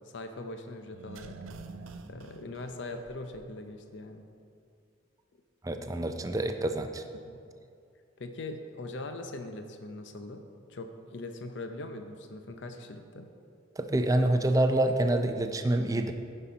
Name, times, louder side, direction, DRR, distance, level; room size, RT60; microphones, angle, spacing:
voice 1, 0.0-1.4 2.1-4.3 7.1-7.5 8.2-10.4 10.7-13.3, left 2 dB, 60° left, 6 dB, 0.6 m, -41 dB
sound 1, 0.9-3.7 4.0-4.1, right 3 dB, 90° right, 0.5 m, -47 dB
voice 2, 5.6-7.0 13.8-16.1, right 1 dB, 15° right, 7 dB, 0.4 m, -27 dB
10.0 x 5.5 x 5.1 m, 2.4 s
head